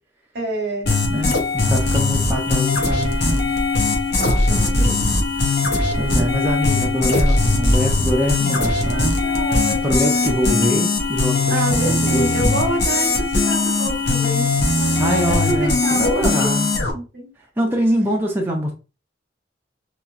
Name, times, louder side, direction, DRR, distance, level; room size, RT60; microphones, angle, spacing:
voice 1, 0.3-0.9 4.1-5.1 8.9-10.1 11.5-16.5 16.9-17.3, right 1 dB, 60° right, 1.0 m, -27 dB
sound 1, 0.9-16.9, left 3 dB, 60° left, 0.7 m, -20 dB
voice 2, 1.1-3.5 6.0-9.1 9.8-12.6 15.0-16.7 17.6-18.7, equal, 10° right, 0.5 m, -23 dB
2.9 x 2.4 x 2.3 m
head